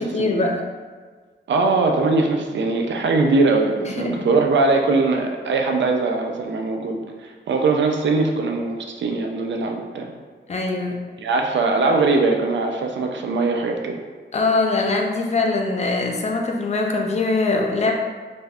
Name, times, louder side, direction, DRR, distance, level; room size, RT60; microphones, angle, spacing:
voice 1, 0.0-0.6 3.8-4.3 10.5-11.0 14.3-17.9, left 3 dB, 35° left, 1 dB, 0.4 m, -22 dB
voice 2, 1.5-10.1 11.2-14.0, right 3 dB, 75° right, 2 dB, 0.4 m, -21 dB
3.3 x 2.6 x 2.3 m, 1.5 s
wide cardioid pair, 145°, 19 cm